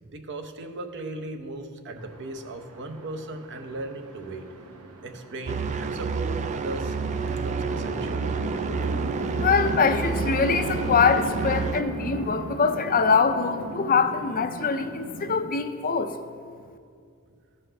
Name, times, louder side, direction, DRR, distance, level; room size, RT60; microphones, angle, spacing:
voice 1, 0.1-4.5 5.0-8.3, right 2 dB, 55° right, 5 dB, 0.8 m, -37 dB
Chatter / Traffic noise roadway noise / Train, 2.0-15.4, right 1 dB, 90° right, 0.8 m, -36 dB
sound 1, 5.5-11.8, right 5 dB, 30° right, 0.3 m, -29 dB
voice 2, 9.4-16.1, left 5 dB, 40° left, 8 dB, 0.5 m, -23 dB
14.5 x 5.5 x 3.4 m, 2.3 s
head